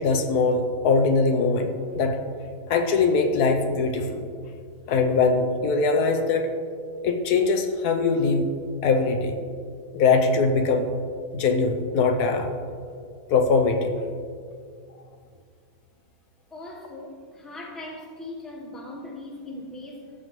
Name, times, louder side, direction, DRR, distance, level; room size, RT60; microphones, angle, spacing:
voice 1, 0.0-2.2 2.7-4.3 4.9-6.5 7.0-8.5 8.8-9.4 9.9-10.9 11.3-12.5 13.3-14.0, left 4 dB, 75° left, 5 dB, 1.2 m, -22 dB
voice 2, 16.5-20.1, left 2 dB, ahead, -2 dB, 0.9 m, -39 dB
14.5 x 6.7 x 3.1 m, 2.2 s
omnidirectional pair, 1.7 m